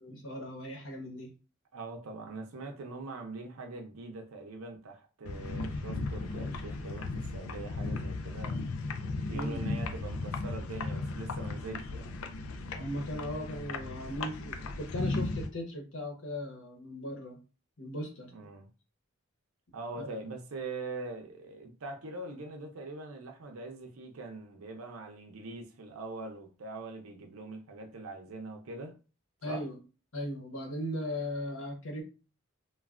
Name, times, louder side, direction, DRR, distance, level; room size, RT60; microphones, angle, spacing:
voice 1, 0.0-1.3 9.3-9.6 12.7-17.4 17.8-18.3 20.0-20.1 29.4-29.8 30.1-32.0, left 1 dB, 65° left, 0.9 m, -38 dB
voice 2, 1.7-8.6 9.3-12.2 18.3-18.7 19.7-29.0 29.5-29.6, right 3 dB, 80° right, 0.6 m, -42 dB
sound 1, 5.3-15.5, left 3 dB, 85° left, 0.4 m, -36 dB
3.2 x 2.2 x 2.4 m
head